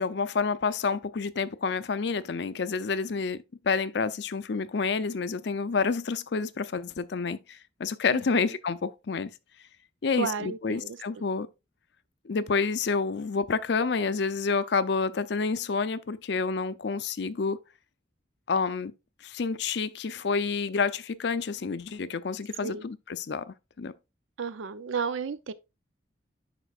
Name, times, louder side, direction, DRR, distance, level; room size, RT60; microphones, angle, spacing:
voice 1, 0.0-9.3 10.0-11.5 12.3-17.6 18.5-18.9 19.2-23.5 23.8-23.9, left 4 dB, 65° left, 0.5 m, -29 dB
voice 2, 8.1-8.6 10.2-11.2 22.6-22.9 24.4-25.5, right 6 dB, 85° right, 0.5 m, -33 dB
11.0 x 4.5 x 2.4 m
head